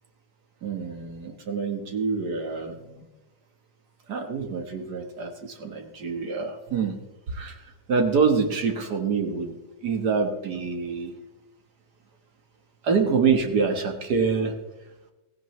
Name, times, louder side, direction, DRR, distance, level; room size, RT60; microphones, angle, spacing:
voice 1, 0.6-3.0 4.1-7.0 7.3-7.6 7.9-9.6 9.8-11.1 12.8-14.5, right 5 dB, 55° right, 5 dB, 1.8 m, -26 dB
16.0 x 15.5 x 3.2 m, 1.0 s
omnidirectional pair, 2.2 m